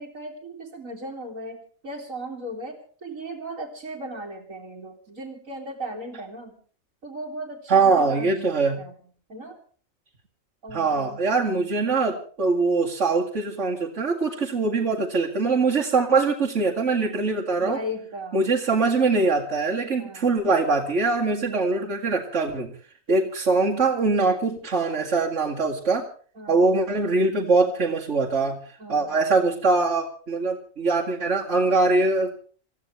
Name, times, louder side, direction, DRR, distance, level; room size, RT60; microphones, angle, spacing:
voice 1, 0.0-6.5 7.0-9.0 9.3-9.6 10.6-11.7 17.6-18.5 20.0-20.4 21.5-22.0 26.3-26.7 28.8-29.4, right 1 dB, 80° right, -4 dB, 3.1 m, -37 dB
voice 2, 7.7-8.8 10.7-17.8 18.3-22.7 23.1-26.0 26.5-28.6 28.9-32.5, right 3 dB, 60° right, -3 dB, 2.6 m, -22 dB
28.0 x 15.0 x 3.3 m, 0.43 s
omnidirectional pair, 1.4 m